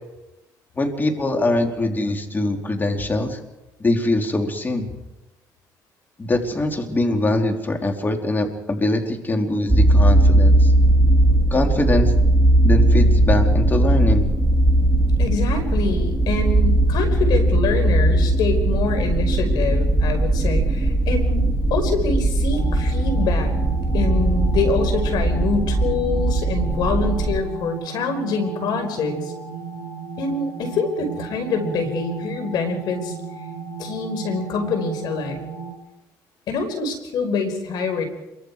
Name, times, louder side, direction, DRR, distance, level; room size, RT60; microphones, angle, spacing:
voice 1, 0.8-3.4 3.8-5.0 6.2-10.7 11.5-12.1 12.6-14.3, left 2 dB, 25° left, 4 dB, 3.7 m, -22 dB
sound 1, 9.7-27.4, right 1 dB, 5° right, 2.4 m, -18 dB
voice 2, 15.2-23.6 23.9-29.3 30.2-33.1 33.8-35.4 36.5-38.0, left 4 dB, 70° left, 6 dB, 5.5 m, -25 dB
sound 2, 22.5-35.7, right 5 dB, 50° left, 6.5 m, -35 dB
27.0 x 24.0 x 5.0 m, 1.0 s
cardioid pair, 85°, 7 cm